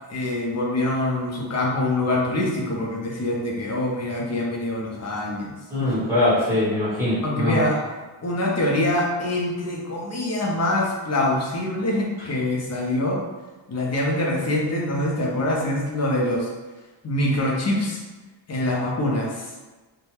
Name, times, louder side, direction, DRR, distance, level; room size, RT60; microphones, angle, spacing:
voice 1, 0.1-5.5 5.8-5.9 7.2-13.2 13.7-16.5 17.0-18.0 18.5-19.4, left 1 dB, 35° left, -2 dB, 0.6 m, -24 dB
voice 2, 5.7-7.6 12.2-12.3, left 1 dB, 5° right, -10 dB, 1.5 m, -22 dB
2.6 x 2.2 x 3.2 m, 1.2 s
cardioid pair, 120°, 48 cm